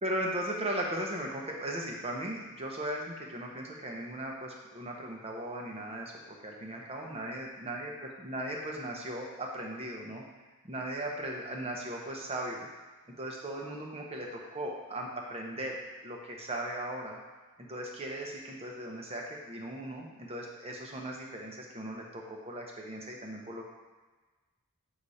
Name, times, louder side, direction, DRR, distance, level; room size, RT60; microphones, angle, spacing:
voice 1, 0.0-7.9 8.2-10.2 10.6-12.7 13.2-15.8 16.0-17.2 17.7-23.7, right 1 dB, 25° right, 0 dB, 1.1 m, -37 dB
8.4 x 4.9 x 4.2 m, 1.2 s
head